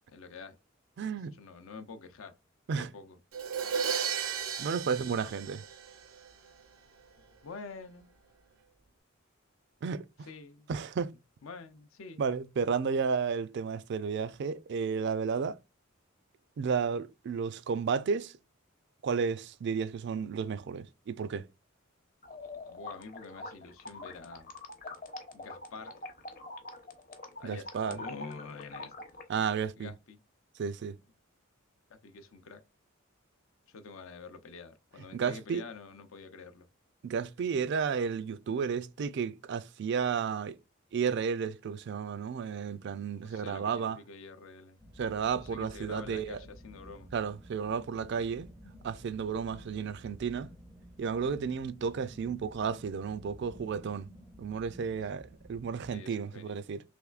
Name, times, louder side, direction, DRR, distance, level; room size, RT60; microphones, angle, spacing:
voice 1, 0.1-0.6 1.4-2.4 2.8-3.2 7.4-8.1 10.2-10.9 11.4-12.3 22.7-24.5 25.3-26.0 27.4-29.0 29.8-30.2 31.9-32.6 33.7-36.7 43.2-44.8 45.4-47.1 54.9-55.0 55.9-56.5, left 4 dB, 80° left, 0.5 m, -47 dB
voice 2, 1.0-1.3 2.7-2.9 4.6-5.6 9.8-10.3 10.7-11.1 12.2-15.6 16.6-18.3 19.0-21.5 27.4-28.0 29.3-29.9 30.6-31.0 35.1-35.6 37.0-40.6 40.9-44.0 45.0-46.4 47.1-48.5 48.8-50.5 51.0-54.1 54.4-56.8, right 6 dB, 55° right, 0.3 m, -32 dB
Crash cymbal, 3.3-6.3, right 7 dB, 85° right, 0.6 m, -34 dB
sound 1, 22.2-29.2, left 2 dB, 45° left, 0.8 m, -44 dB
sound 2, 44.8-55.9, equal, 5° left, 0.4 m, -52 dB
3.4 x 3.1 x 2.3 m
head